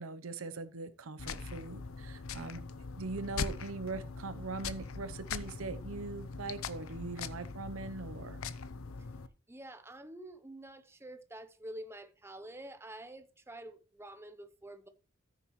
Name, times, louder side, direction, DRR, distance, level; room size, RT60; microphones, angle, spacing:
voice 1, 0.0-2.6 2.9-8.4, right 3 dB, 85° right, 0.8 m, -41 dB
sound 1, 1.2-9.3, left 5 dB, 90° left, 0.6 m, -41 dB
voice 2, 9.5-14.9, right 1 dB, 10° right, 0.7 m, -48 dB
14.0 x 6.5 x 3.1 m
head